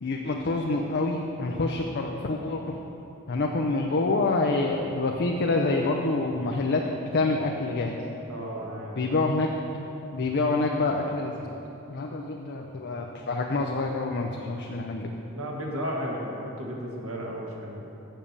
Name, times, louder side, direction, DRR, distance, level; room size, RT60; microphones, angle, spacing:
voice 1, 0.0-2.7 3.3-8.0 9.0-9.5 10.1-11.6 11.9-15.1, left 3 dB, 50° left, 1 dB, 0.6 m, -27 dB
voice 2, 8.3-9.2 15.3-17.8, equal, 70° right, -2 dB, 1.6 m, -34 dB
7.3 x 6.6 x 7.2 m, 2.9 s
head